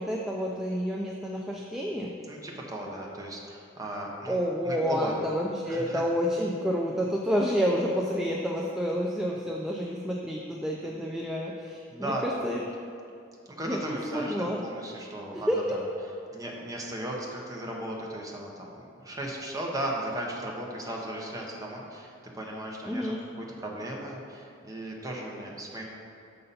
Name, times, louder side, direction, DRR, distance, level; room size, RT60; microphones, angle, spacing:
voice 1, 0.0-2.1 4.3-12.6 13.7-14.6 15.3-15.8 22.8-23.2, equal, ahead, -2 dB, 0.4 m, -29 dB
voice 2, 2.3-5.1 5.7-6.0 11.9-12.4 13.5-15.8 16.3-25.8, right 1 dB, 20° right, -2 dB, 0.9 m, -36 dB
6.6 x 5.4 x 4.2 m, 2.6 s
head